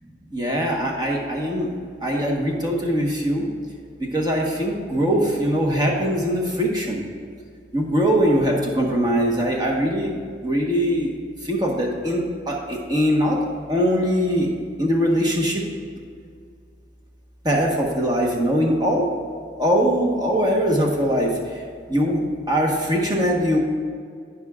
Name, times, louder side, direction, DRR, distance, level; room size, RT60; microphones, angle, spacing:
voice 1, 0.3-1.7 2.0-3.5 4.0-7.0 7.7-10.1 10.4-11.1 11.4-13.4 13.7-14.5 14.8-15.6 17.4-19.0 19.6-21.3 21.9-23.6, equal, 20° right, -1 dB, 1.2 m, -21 dB
17.5 x 5.9 x 2.4 m, 2.2 s
head